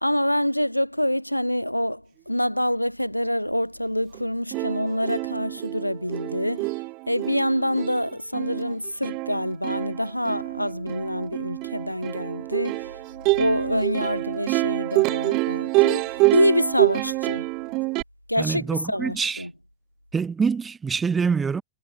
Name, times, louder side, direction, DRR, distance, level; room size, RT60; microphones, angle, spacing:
voice 1, 0.0-6.7 7.1-12.9 13.3-17.5 18.3-19.5, equal, 90° left, 1.0 m, -26 dB
Plucked string instrument, 4.1-4.2 4.5-18.0, right 25 dB, 40° right, 0.6 m, -26 dB
voice 2, 18.4-19.4 20.1-21.6, right 5 dB, 15° right, 4.6 m, -25 dB
figure-of-eight pair, 90°, 0 cm